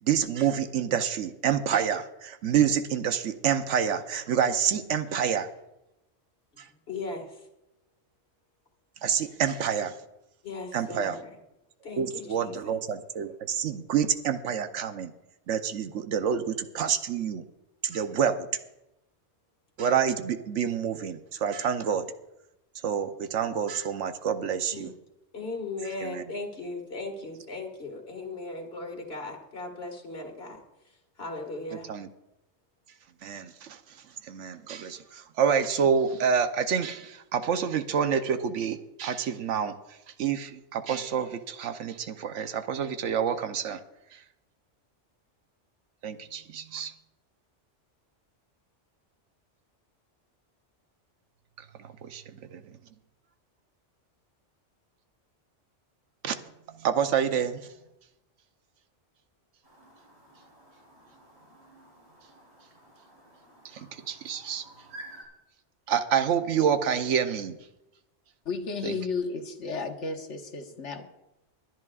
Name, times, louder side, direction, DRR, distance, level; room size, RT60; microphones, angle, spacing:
voice 1, 0.0-5.5 6.6-6.7 9.0-10.0 10.7-11.2 12.0-15.1 15.5-17.4 17.8-18.5 19.8-22.1 22.8-24.9 26.0-26.2 31.7-32.1 33.2-34.0 34.2-39.8 40.2-43.8 44.1-44.2 46.0-46.9 51.8-52.8 56.2-56.4 56.7-57.7 63.6-64.6 65.9-67.6 68.8-69.0, right 7 dB, 90° right, 9 dB, 1.1 m, -28 dB
voice 2, 6.7-7.4 10.4-11.3 11.8-12.8 24.7-24.9 25.3-30.6 31.2-31.9, left 3 dB, 60° left, 3 dB, 2.1 m, -37 dB
Chirp tweet, 59.6-65.2, right 1 dB, 40° right, 4.2 m, -51 dB
voice 3, 68.4-71.0, left 4 dB, 80° left, 4 dB, 1.6 m, -33 dB
23.0 x 11.0 x 2.4 m, 0.91 s
omnidirectional pair, 1.2 m